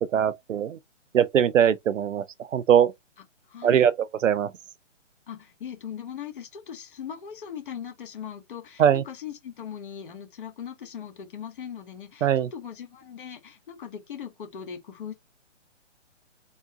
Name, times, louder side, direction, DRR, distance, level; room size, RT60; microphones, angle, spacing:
voice 1, 0.1-0.8 1.1-2.3 2.5-2.9 3.6-4.5 8.8-9.0 12.2-12.5, right 9 dB, 85° right, 0.6 m, -21 dB
voice 2, 3.5-3.9 5.3-15.1, left 8 dB, 45° left, 1.6 m, -39 dB
3.9 x 3.5 x 2.5 m
hypercardioid pair, 160°, 37 cm